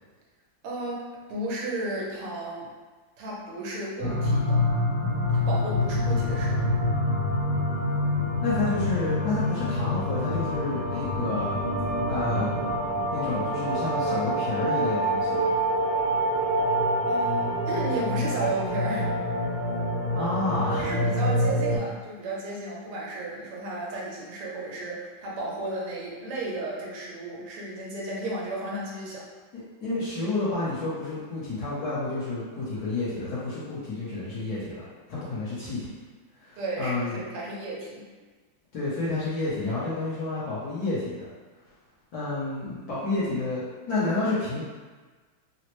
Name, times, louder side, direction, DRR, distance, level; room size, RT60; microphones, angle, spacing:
voice 1, 0.6-2.7 3.2-4.6 5.3-6.7 17.1-19.1 20.8-29.2 36.6-38.0, right 2 dB, 90° right, -4 dB, 1.7 m, -33 dB
sound 1, 4.0-21.8, equal, 85° left, 0.5 m, -26 dB
voice 2, 8.4-11.6 12.1-12.6 13.1-15.4 20.1-20.9 29.8-35.9 36.4-37.2 38.7-41.3 42.1-44.6, left 2 dB, 60° left, -10 dB, 1.1 m, -30 dB
4.1 x 2.0 x 3.0 m, 1.4 s
omnidirectional pair, 2.4 m